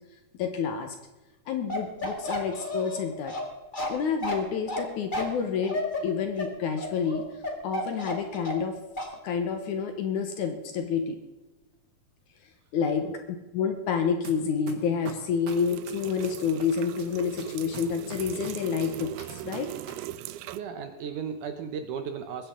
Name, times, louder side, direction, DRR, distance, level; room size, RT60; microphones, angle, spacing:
voice 1, 0.4-1.0 1.5-3.4 3.9-7.3 7.6-8.8 9.2-11.2 12.7-13.1 13.5-19.7, left 6 dB, 70° left, 6 dB, 2.1 m, -29 dB
Bark, 1.7-8.7 9.0-9.2, left 1 dB, 35° left, 0.7 m, -32 dB
sound 1, 14.2-14.3 14.7-16.6 17.0-19.9 20.2-20.3, right 5 dB, 45° right, 1.3 m, -41 dB
sound 2, 15.5-20.6, right 14 dB, 90° right, 2.5 m, -39 dB
voice 2, 20.5-22.5, right 6 dB, 70° right, 7 dB, 2.0 m, -35 dB
22.0 x 9.9 x 3.8 m, 1.1 s
omnidirectional pair, 4.3 m